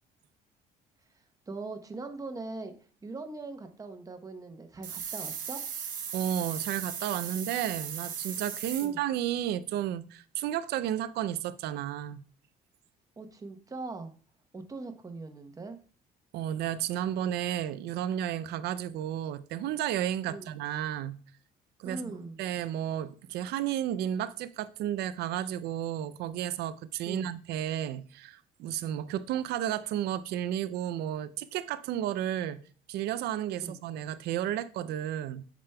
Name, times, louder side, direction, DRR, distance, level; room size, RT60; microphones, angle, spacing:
voice 1, 1.5-2.7 3.0-5.6 8.8-9.0 13.2-14.1 14.5-15.8 20.3-20.5 21.8-22.4 27.1-27.3 33.6-33.8, right 3 dB, 20° right, 0.9 m, -41 dB
sound 1, 4.8-8.9, right 7 dB, 55° right, 1.0 m, -37 dB
voice 2, 6.1-12.2 16.3-21.2 21.8-35.4, right 11 dB, 75° right, 0.5 m, -32 dB
8.8 x 5.1 x 2.2 m
cardioid pair, 110°, 17 cm